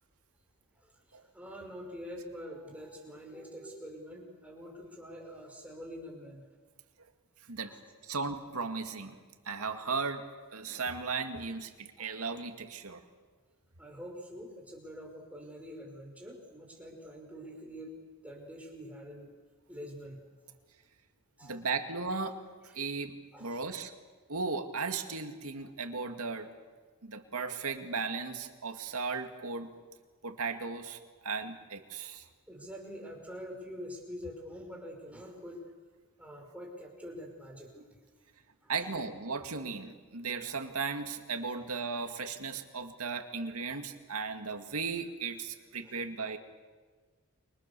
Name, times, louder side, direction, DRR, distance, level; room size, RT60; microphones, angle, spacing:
voice 1, 0.8-6.4 7.6-7.8 12.0-12.1 13.8-19.3 19.7-20.6 21.4-21.6 23.3-23.7 32.5-35.6 36.2-38.0 38.6-38.7 45.8-45.9, equal, 5° right, 0 dB, 5.2 m, -46 dB
voice 2, 8.1-9.1 9.5-10.2 10.5-11.7 12.0-13.0 21.5-22.4 22.8-23.1 23.4-23.9 24.3-26.5 27.1-29.7 30.2-31.0 31.2-32.2 38.7-46.4, right 4 dB, 80° right, 6 dB, 2.2 m, -36 dB
30.0 x 25.0 x 6.9 m, 1.4 s
head